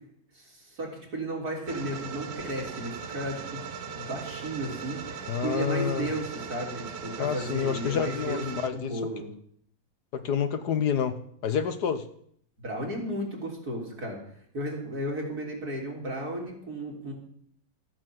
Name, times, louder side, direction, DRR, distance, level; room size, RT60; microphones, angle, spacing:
voice 1, 0.3-9.3 12.6-14.2 14.5-17.1, right 1 dB, 55° right, -1 dB, 4.1 m, -34 dB
sound 1, 1.7-8.7, right 6 dB, 80° right, 1.8 m, -39 dB
voice 2, 5.3-6.1 7.2-9.0 10.1-12.0, left 7 dB, 65° left, 10 dB, 1.5 m, -28 dB
14.5 x 8.9 x 7.7 m, 0.63 s
omnidirectional pair, 1.9 m